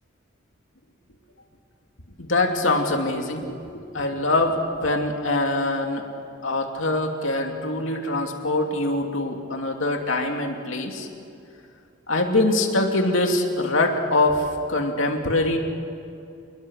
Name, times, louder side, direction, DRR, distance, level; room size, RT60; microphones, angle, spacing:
voice 1, 2.2-3.6 3.9-6.0 6.4-11.1 12.1-14.4 14.7-15.6, left 2 dB, 70° left, 2 dB, 2.8 m, -23 dB
27.5 x 20.5 x 6.5 m, 2.6 s
head